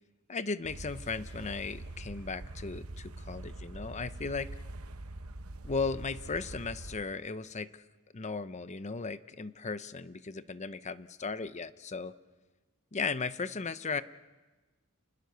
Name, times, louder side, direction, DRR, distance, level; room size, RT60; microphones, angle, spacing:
voice 1, 0.3-4.5 5.6-7.7 8.1-12.1 12.9-14.0, left 4 dB, 30° left, 14 dB, 0.7 m, -36 dB
sound 1, 0.6-7.0, right 2 dB, 70° right, 1.0 m, -44 dB
29.5 x 19.5 x 6.8 m, 1.2 s
head